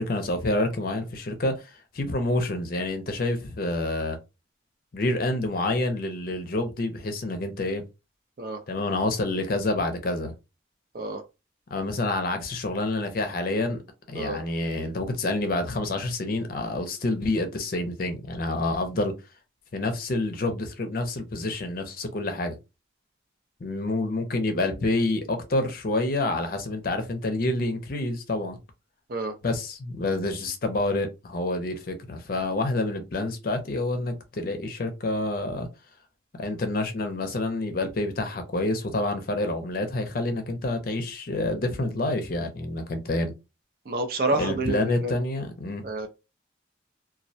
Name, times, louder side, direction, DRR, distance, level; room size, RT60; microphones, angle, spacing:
voice 1, 0.0-4.2 4.9-7.8 8.7-10.3 11.7-13.8 14.1-19.1 19.7-22.6 23.6-28.6 29.4-35.7 36.4-43.3 44.4-45.8, left 2 dB, 50° left, 0.5 m, -28 dB
voice 2, 43.9-45.1 45.8-46.1, right 2 dB, 50° right, 0.5 m, -28 dB
2.3 x 2.1 x 2.6 m
head